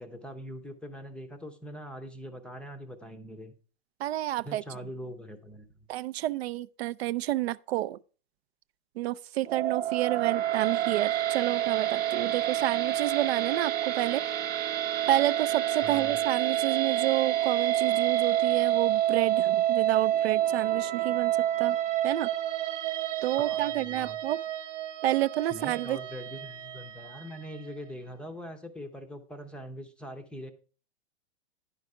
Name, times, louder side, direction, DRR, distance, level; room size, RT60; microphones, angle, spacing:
voice 1, 0.0-3.5 4.4-5.7 15.8-16.2 23.4-24.2 25.5-30.5, equal, 5° left, 0.6 m, -42 dB
voice 2, 4.0-4.6 5.9-8.0 9.0-14.2 15.1-21.8 22.0-22.3 23.2-24.4 25.0-26.0, right 14 dB, 70° right, 0.5 m, -29 dB
sound 1, 9.4-27.7, right 12 dB, 30° right, 0.8 m, -28 dB
10.0 x 5.5 x 4.7 m
hypercardioid pair, 140°, 32 cm